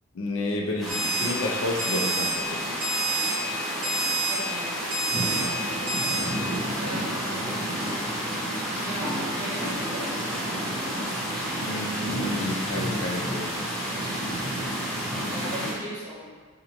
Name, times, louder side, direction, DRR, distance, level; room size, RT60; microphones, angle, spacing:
voice 1, 0.1-2.9 11.6-13.5, left 2 dB, 65° left, 1 dB, 0.4 m, -31 dB
sound 1, 0.8-15.7, equal, ahead, 0.5 m, -30 dB
Alarm, 0.9-1.3 1.8-2.3 2.8-3.3 3.8-4.3 4.9-5.4 5.9-6.2, right 3 dB, 55° right, 1.1 m, -27 dB
voice 2, 4.3-4.8 5.1-6.5 6.8-7.8 8.8-10.1 15.2-16.3, equal, 15° right, -9 dB, 0.9 m, -38 dB
2.9 x 2.3 x 3.9 m, 1.5 s
head